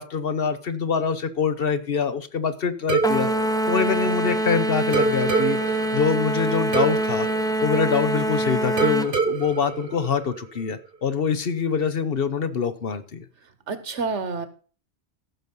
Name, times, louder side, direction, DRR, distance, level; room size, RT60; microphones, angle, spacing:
voice 1, 0.0-3.3 3.7-7.3 7.6-13.2, left 6 dB, 60° left, 12 dB, 1.1 m, -25 dB
sound 1, 2.9-4.5 4.9-8.3 8.8-10.7, right 5 dB, 50° right, 1.5 m, -27 dB
sound 2, 3.0-9.1, right 1 dB, 5° left, 0.5 m, -24 dB
voice 2, 13.4-14.5, right 4 dB, 85° right, 11 dB, 1.6 m, -29 dB
14.5 x 6.2 x 5.4 m, 0.39 s
omnidirectional pair, 1.2 m